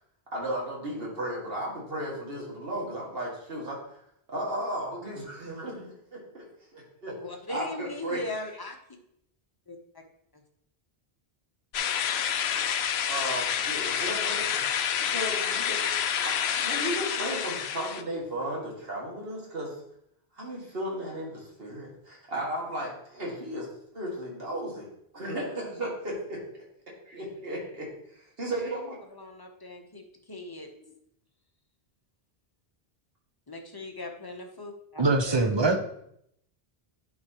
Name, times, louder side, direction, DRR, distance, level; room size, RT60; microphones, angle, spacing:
voice 1, 0.3-4.0 4.3-6.4 6.7-7.2 7.5-8.2 13.1-14.6 15.0-15.9 16.2-19.7 20.4-24.9 25.1-26.6 27.1-29.0 30.7-30.9, right 1 dB, 65° right, -3 dB, 2.2 m, -35 dB
voice 2, 7.2-8.8 9.7-9.8 29.1-30.7 33.5-35.0, left 2 dB, 25° left, 3 dB, 0.8 m, -39 dB
sound 1, 11.7-18.0, left 8 dB, 85° left, 0.8 m, -28 dB
voice 3, 35.0-35.8, right 3 dB, 30° right, 6 dB, 0.6 m, -23 dB
11.0 x 4.9 x 3.0 m, 0.73 s
omnidirectional pair, 1.0 m